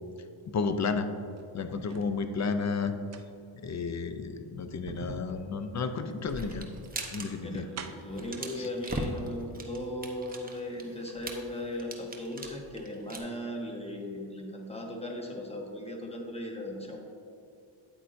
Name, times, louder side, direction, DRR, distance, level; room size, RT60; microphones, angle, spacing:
voice 1, 0.5-1.1 1.5-2.9 3.6-6.7 7.1-7.6 8.6-8.7, left 4 dB, 35° left, 9 dB, 0.5 m, -32 dB
sound 1, 1.2-2.2 2.9-8.3 9.2-9.3 9.7-10.5 10.8-10.9, right 4 dB, 35° right, 0.5 m, -47 dB
sound 2, 6.3-7.3 7.5-7.7 8.0-13.2, right 2 dB, 20° right, 0.9 m, -39 dB
voice 2, 7.0-17.0, left 1 dB, 10° left, 0 dB, 1.2 m, -38 dB
9.0 x 8.2 x 2.6 m, 2.5 s
cardioid pair, 100°, 49 cm